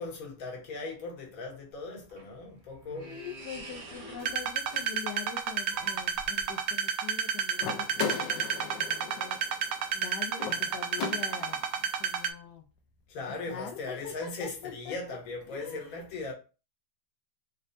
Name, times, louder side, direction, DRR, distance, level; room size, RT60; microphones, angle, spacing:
voice 1, 0.0-3.2 13.1-16.3, left 3 dB, 55° left, 1.4 m, -38 dB
sound 1, 1.7-6.7, right 2 dB, 50° right, 1.2 m, -48 dB
voice 2, 3.1-9.4 9.9-12.6 13.5-15.2 15.5-16.0, left 8 dB, 70° left, 1.1 m, -43 dB
sound 2, 4.3-12.3, right 7 dB, 70° right, 0.9 m, -31 dB
sound 3, 7.6-11.7, left 6 dB, 90° left, 1.4 m, -38 dB
4.2 x 3.2 x 2.6 m
omnidirectional pair, 1.9 m